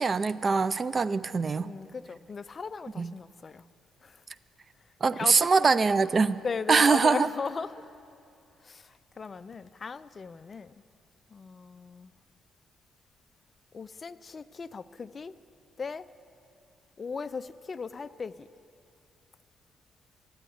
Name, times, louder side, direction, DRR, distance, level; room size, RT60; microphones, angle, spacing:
voice 1, 0.0-1.7 3.0-3.1 5.0-6.4 6.7-7.3, right 4 dB, 35° right, 0.3 m, -23 dB
voice 2, 1.6-3.6 4.0-4.2 5.1-5.7 6.4-7.9 8.6-10.7 11.3-12.1 13.7-15.3 15.8-16.1 17.0-18.5, left 5 dB, 35° left, 0.3 m, -37 dB
14.5 x 9.2 x 7.8 m
cardioid pair, 90°, 0 cm